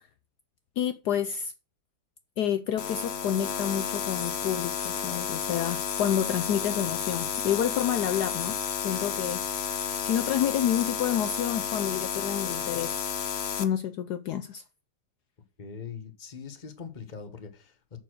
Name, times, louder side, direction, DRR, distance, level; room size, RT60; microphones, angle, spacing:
voice 1, 0.8-1.5 2.4-9.4 9.7-13.0 13.6-14.6, left 10 dB, 70° left, 1.1 m, -29 dB
sound 1, 2.8-13.6, left 7 dB, 55° left, 0.7 m, -31 dB
voice 2, 15.6-18.0, left 6 dB, 30° left, 1.2 m, -42 dB
6.9 x 6.2 x 6.2 m
omnidirectional pair, 2.0 m